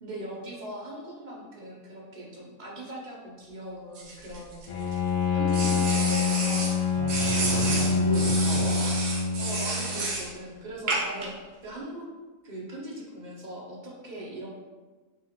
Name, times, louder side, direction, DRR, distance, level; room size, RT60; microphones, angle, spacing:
voice 1, 0.0-4.5 5.3-6.7 9.4-11.3 11.6-12.0 12.4-14.6, right 1 dB, 45° right, -3 dB, 0.6 m, -40 dB
sound 1, 4.0-5.0 5.5-6.8 7.1-10.3 10.9-11.3, right 3 dB, 65° right, 1.1 m, -31 dB
Bowed string instrument, 4.7-10.0, left 4 dB, 80° left, 1.2 m, -26 dB
voice 2, 7.0-9.0, equal, 20° left, -10 dB, 0.7 m, -34 dB
4.8 x 2.5 x 2.9 m, 1.3 s
omnidirectional pair, 1.5 m